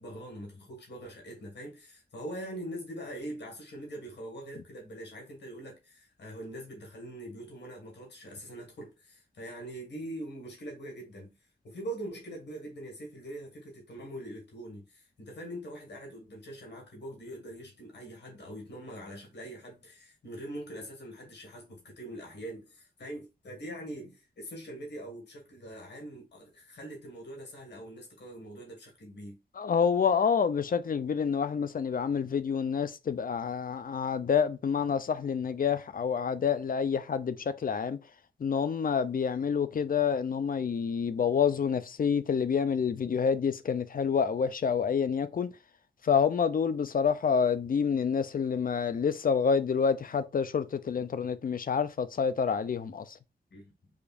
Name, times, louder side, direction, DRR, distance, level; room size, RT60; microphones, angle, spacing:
voice 1, 0.0-11.3 11.6-29.4 53.5-53.7, right 1 dB, 90° left, 1.7 m, -43 dB
voice 2, 29.6-38.0 38.4-45.5 46.0-53.2, left 6 dB, 55° left, 0.5 m, -28 dB
5.0 x 2.5 x 2.4 m
cardioid pair, 70°, 17 cm